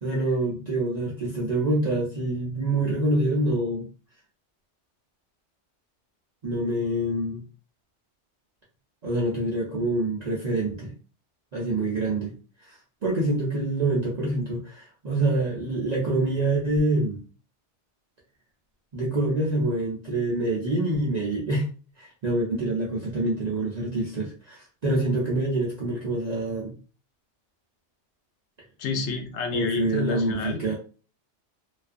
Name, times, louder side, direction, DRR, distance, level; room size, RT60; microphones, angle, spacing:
voice 1, 0.0-3.9 6.4-7.4 9.0-10.9 11.5-12.4 12.7-12.8 13.0-17.2 18.9-21.7 22.0-26.7 29.5-30.7, right 2 dB, 50° right, -5 dB, 0.5 m, -26 dB
voice 2, 28.8-30.6, left 5 dB, 70° left, 4 dB, 0.9 m, -29 dB
2.4 x 2.2 x 2.4 m, 0.38 s
omnidirectional pair, 1.2 m